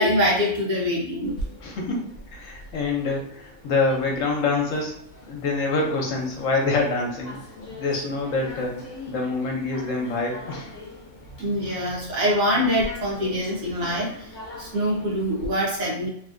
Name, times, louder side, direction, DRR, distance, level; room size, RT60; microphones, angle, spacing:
voice 1, 0.0-1.4 11.4-14.3 14.6-16.1, equal, 75° right, -3 dB, 1.4 m, -24 dB
sound 1, 1.2-15.5, left 1 dB, 50° left, 1.0 m, -41 dB
voice 2, 1.6-4.9 5.3-7.4 7.7-8.8 9.1-10.8, left 3 dB, 70° left, 0 dB, 1.1 m, -26 dB
3.1 x 2.6 x 2.5 m, 0.67 s
omnidirectional pair, 1.4 m